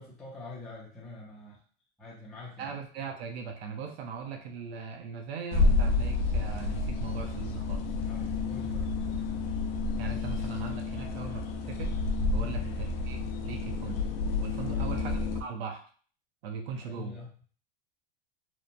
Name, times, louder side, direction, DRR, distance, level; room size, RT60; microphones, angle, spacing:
voice 1, 0.0-1.6 2.0-2.7 8.0-9.0 12.4-12.6 14.6-15.0 16.8-17.3, left 2 dB, ahead, -7 dB, 0.3 m, -45 dB
voice 2, 2.6-7.8 10.0-11.9 12.3-14.0 14.4-15.8 16.4-17.2, right 5 dB, 75° right, 3 dB, 0.7 m, -39 dB
sound 1, 5.5-15.4, left 3 dB, 65° left, 0.5 m, -30 dB
3.0 x 2.0 x 2.5 m, 0.43 s
supercardioid pair, 155°, 31 cm